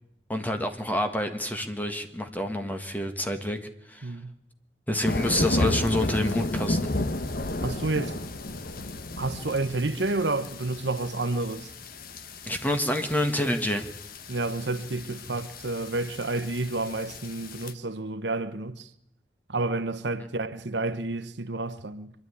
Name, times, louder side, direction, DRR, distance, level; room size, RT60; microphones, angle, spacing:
voice 1, 0.3-3.6 3.9-4.1 4.9-6.9 12.4-13.9, left 1 dB, 10° left, 1.7 m, -28 dB
sound 1, 5.0-17.7, left 1 dB, 55° left, 1.2 m, -33 dB
voice 2, 7.6-8.2 9.2-11.7 14.3-18.9 19.5-22.1, right 2 dB, 80° right, 1.1 m, -30 dB
24.5 x 11.0 x 9.8 m
head